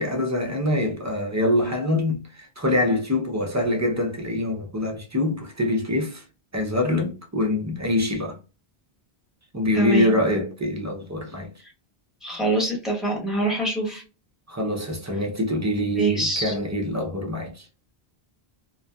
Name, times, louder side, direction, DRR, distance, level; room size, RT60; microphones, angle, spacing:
voice 1, 0.0-6.2 6.5-8.4 9.5-11.5 14.5-17.7, left 1 dB, 25° right, 0.4 m, -24 dB
voice 2, 9.7-10.1 12.2-14.0 15.9-16.5, right 1 dB, ahead, 0.9 m, -25 dB
2.6 x 2.3 x 2.2 m
omnidirectional pair, 1.1 m